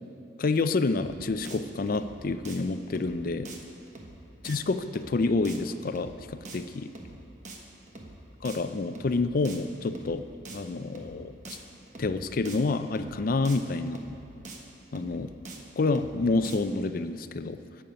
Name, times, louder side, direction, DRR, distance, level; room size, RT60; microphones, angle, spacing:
voice 1, 0.4-3.5 4.4-6.9 8.4-10.2 10.5-11.6 12.0-14.0 14.9-15.3 15.8-17.6, left 3 dB, 50° left, 11 dB, 0.4 m, -28 dB
sound 1, 1.0-1.2 1.5-1.6 1.9-2.2 2.4-2.6 3.0-3.2 3.5-3.6 3.9-4.2 4.5-4.6 5.0-5.2 5.4-5.6 5.9-6.2 6.5-6.6 7.0-7.2 7.5-7.6 7.9-8.2 8.5-8.6 9.0-9.2 9.4-9.6 9.9-10.2 10.5-10.6 11.0-11.2 11.4-11.6 11.9-12.2 12.5-12.6 13.0-13.2 13.5-13.6 13.9-14.2 14.4-14.6 15.0-15.2 15.5-15.6 15.9-16.2 16.4-16.6, right 2 dB, 40° right, 1.2 m, -44 dB
17.0 x 7.1 x 5.2 m, 2.7 s
head